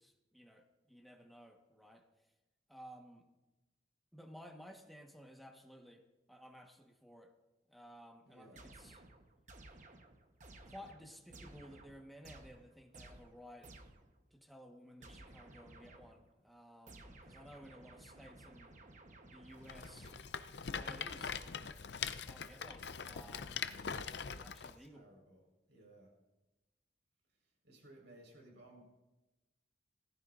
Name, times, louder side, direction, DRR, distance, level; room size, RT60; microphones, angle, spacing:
voice 1, 0.0-2.1 2.7-3.3 4.1-7.3 7.7-9.0 10.6-13.7 14.3-18.8 19.3-20.1 20.6-21.6 22.1-23.9 24.2-25.1, equal, ahead, 2 dB, 1.3 m, -56 dB
voice 2, 8.3-8.6 24.4-25.4 25.7-26.1 27.6-28.9, right 1 dB, 85° right, 0 dB, 4.6 m, -60 dB
sound 1, 8.6-14.2 15.0-16.3 16.9-20.6, right 2 dB, 45° right, 1.1 m, -57 dB
Rattle, 19.6-24.7, left 6 dB, 70° left, 0.6 m, -42 dB
18.5 x 14.5 x 2.6 m, 1.0 s
head